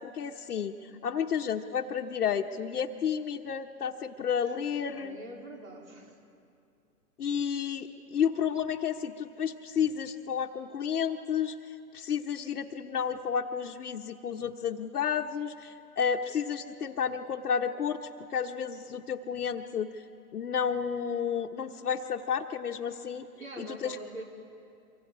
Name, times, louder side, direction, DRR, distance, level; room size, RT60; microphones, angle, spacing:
voice 1, 0.0-5.2 7.2-20.0 20.3-23.3 23.6-24.0, left 7 dB, 75° left, 1 dB, 1.0 m, -31 dB
voice 2, 4.9-6.2 23.3-24.2, right 2 dB, 60° right, 1 dB, 4.2 m, -43 dB
27.0 x 24.5 x 4.9 m, 2.5 s
hypercardioid pair, 155°, 46 cm